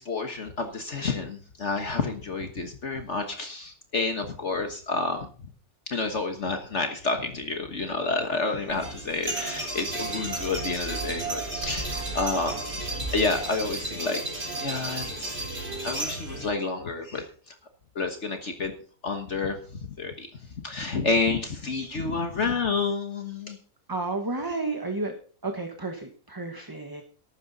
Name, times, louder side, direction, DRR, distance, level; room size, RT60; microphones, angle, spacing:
voice 1, 0.0-5.3 5.9-14.2 14.6-15.4 15.8-17.5 17.9-18.7 19.0-20.3 20.6-23.6 24.5-24.6, left 3 dB, 55° left, 5 dB, 1.7 m, -29 dB
sound 1, 8.7-16.5, right 2 dB, 45° right, 4.4 m, -33 dB
voice 2, 23.9-25.1 25.4-27.0, right 3 dB, 15° right, 4 dB, 1.2 m, -31 dB
14.0 x 12.5 x 4.0 m, 0.41 s
omnidirectional pair, 1.5 m